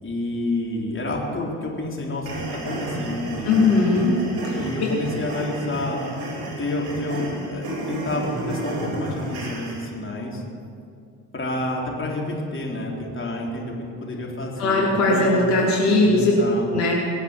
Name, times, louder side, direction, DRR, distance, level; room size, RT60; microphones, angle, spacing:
voice 1, 0.0-3.7 4.5-6.0 6.6-10.4 11.3-15.5 15.9-16.7, left 2 dB, 30° left, -2 dB, 4.3 m, -29 dB
sound 1, 2.3-9.9, right 1 dB, 60° right, 4.8 m, -32 dB
voice 2, 3.4-4.1 4.4-4.9 14.6-16.3 16.7-16.9, left 2 dB, 75° left, -4 dB, 3.5 m, -19 dB
23.5 x 7.8 x 7.7 m, 2.4 s
hypercardioid pair, 55°, 41 cm